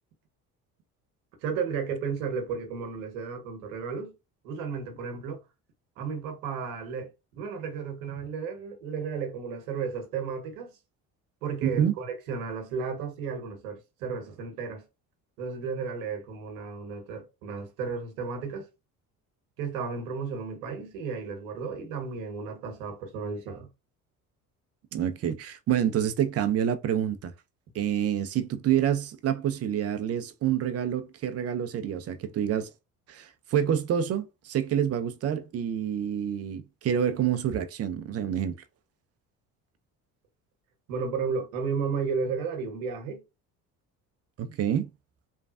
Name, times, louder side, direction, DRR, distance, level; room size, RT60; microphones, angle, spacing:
voice 1, 1.4-4.1 4.4-5.4 6.0-10.7 11.4-14.8 15.4-18.7 19.6-23.7 40.9-43.2, right 5 dB, 75° right, 1.1 m, -33 dB
voice 2, 11.6-11.9 24.9-27.3 27.7-32.7 33.1-38.6 44.4-44.9, right 9 dB, 35° right, 0.5 m, -27 dB
3.1 x 2.3 x 2.4 m
hypercardioid pair, 60°, 43 cm